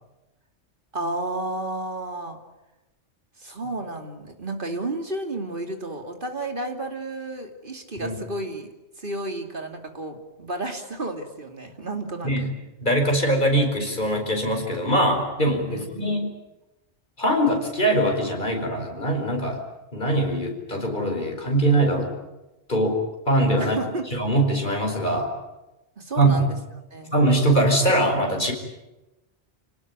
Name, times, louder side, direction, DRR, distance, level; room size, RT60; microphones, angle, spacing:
voice 1, 0.9-2.4 3.4-8.7 9.0-12.5 15.7-16.2 23.6-24.1 26.0-26.6 26.9-27.1, right 2 dB, 50° right, 5 dB, 3.0 m, -32 dB
voice 2, 12.8-16.3 17.2-19.6 19.9-22.1 22.7-23.0 23.3-23.8 24.1-25.3 26.2-26.4 27.1-28.5, right 1 dB, 45° left, 3 dB, 5.2 m, -22 dB
27.0 x 18.5 x 9.7 m, 1.0 s
omnidirectional pair, 1.2 m